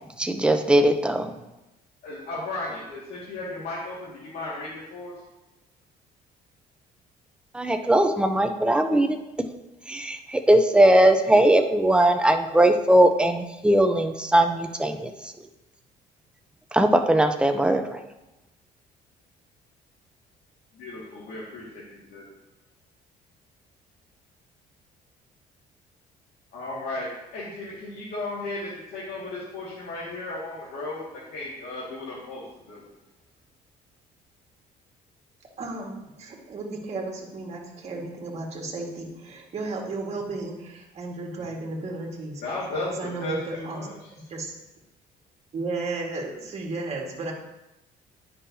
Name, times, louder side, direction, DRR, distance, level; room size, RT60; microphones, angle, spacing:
voice 1, 0.2-1.3 7.5-9.2 9.9-15.3 16.7-18.0, right 1 dB, 5° right, 6 dB, 0.6 m, -20 dB
voice 2, 2.0-5.1 20.7-21.8 22.1-22.2 26.5-32.8 42.4-42.9 43.2-44.1, left 2 dB, 70° left, -7 dB, 2.0 m, -35 dB
voice 3, 35.6-42.4 42.8-44.5 45.5-47.3, right 3 dB, 40° right, -1 dB, 1.8 m, -34 dB
9.9 x 5.6 x 2.7 m, 0.96 s
cardioid pair, 110°, 17 cm